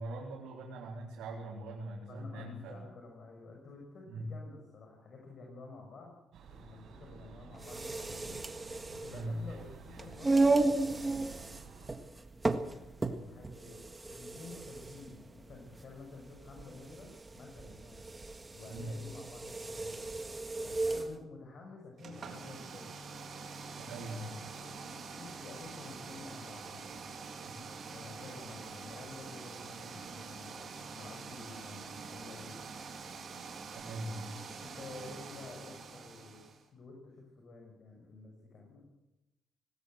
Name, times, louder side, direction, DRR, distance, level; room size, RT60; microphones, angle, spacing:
voice 1, 0.0-2.8 4.1-4.3 9.1-9.4 18.7-19.0 23.8-24.4 27.5-27.6 33.9-34.4, right 1 dB, 85° right, -3 dB, 4.2 m, -41 dB
voice 2, 2.0-6.1 6.5-8.4 8.9-11.7 12.4-13.8 14.1-18.0 18.5-20.2 20.6-22.9 24.5-27.1 27.8-32.6 34.6-36.4 36.7-38.8, left 3 dB, 55° left, 0 dB, 6.1 m, -51 dB
sound 1, 6.3-12.0, right 6 dB, 70° right, 5.8 m, -53 dB
sound 2, 7.5-21.1, right 2 dB, 20° right, 1.7 m, -34 dB
sound 3, 22.0-36.6, right 5 dB, 50° right, 3.9 m, -46 dB
18.5 x 17.5 x 7.9 m, 0.93 s
cardioid pair, 90°, 0 cm